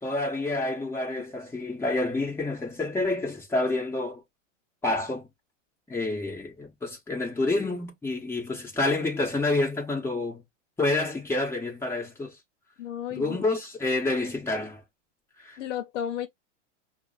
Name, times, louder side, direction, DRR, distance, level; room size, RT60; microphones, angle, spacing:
voice 1, 0.0-4.2 4.8-5.3 5.9-10.4 10.8-12.4 13.1-14.8 15.4-15.6, left 2 dB, 5° left, 1.2 m, -28 dB
voice 2, 12.8-13.5 15.6-16.3, left 9 dB, 75° left, 0.8 m, -33 dB
6.0 x 2.2 x 2.4 m
supercardioid pair, 140°, 37 cm